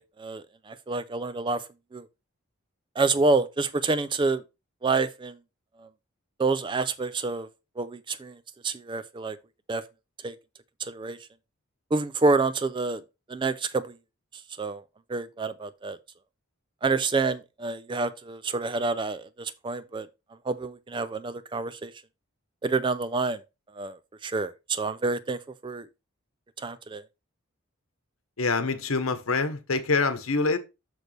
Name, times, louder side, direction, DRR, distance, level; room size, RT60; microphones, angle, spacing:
voice 1, 0.0-1.6 1.9-2.1 3.0-4.4 4.8-5.4 5.8-5.9 6.4-7.5 7.8-9.4 9.7-9.8 10.2-10.3 10.8-11.2 11.9-13.0 13.3-13.9 14.6-14.8 15.1-16.0 16.8-20.1 20.5-21.9 22.6-23.4 23.8-25.9 26.6-27.0, right 3 dB, 20° right, 0.4 m, -28 dB
voice 2, 28.4-30.6, left 4 dB, 75° left, 1.1 m, -25 dB
6.6 x 6.2 x 3.3 m
head